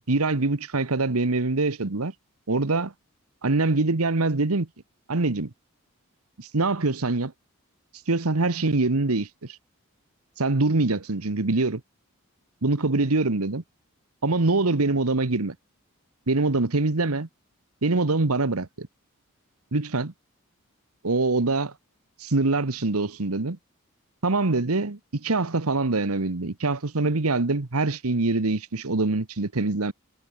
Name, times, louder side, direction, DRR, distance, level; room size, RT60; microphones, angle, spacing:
voice 1, 0.1-2.1 2.5-2.9 3.4-4.7 5.1-5.5 6.4-7.3 8.1-9.3 10.4-11.8 12.6-13.6 14.2-15.5 16.3-17.3 17.8-18.9 19.7-20.1 21.0-21.7 22.2-23.6 24.2-29.9, right 3 dB, 85° right, 1.3 m, -24 dB
head